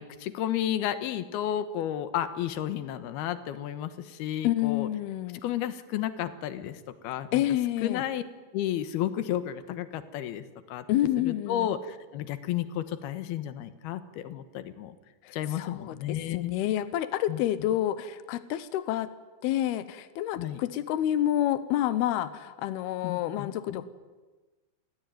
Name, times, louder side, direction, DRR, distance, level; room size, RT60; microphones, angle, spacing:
voice 1, 0.0-4.9 5.4-7.4 7.8-8.2 8.5-10.8 11.2-15.0 15.3-16.6 17.3-17.4 20.3-20.6 23.0-23.8, left 11 dB, 70° left, 12 dB, 2.6 m, -32 dB
voice 2, 4.4-5.4 7.3-8.0 10.9-11.7 15.2-19.1 19.4-23.9, left 12 dB, 85° left, 14 dB, 2.2 m, -28 dB
29.5 x 20.5 x 9.3 m, 1.3 s
omnidirectional pair, 5.9 m